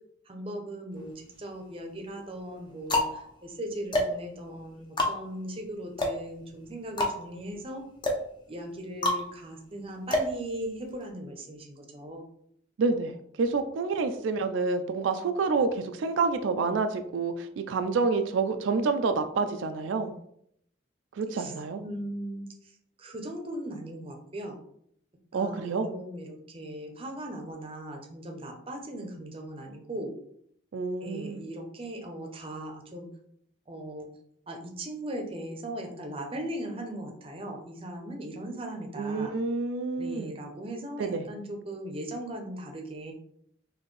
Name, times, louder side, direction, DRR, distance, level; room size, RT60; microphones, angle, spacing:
voice 1, 0.3-7.8 8.5-12.3 21.3-21.5 21.8-22.7 23.0-24.6 25.3-30.1 31.0-33.1 33.7-34.1 34.5-39.3 40.0-43.1, right 1 dB, 30° right, 3 dB, 0.6 m, -38 dB
sound 1, 1.0-1.7 2.3-11.1, left 1 dB, 25° left, 0.6 m, -31 dB
voice 2, 12.8-20.1 21.2-21.8 25.3-25.9 30.7-31.4 39.0-40.3 41.0-41.3, right 4 dB, 90° right, 8 dB, 0.4 m, -28 dB
4.2 x 2.7 x 3.1 m, 0.69 s
head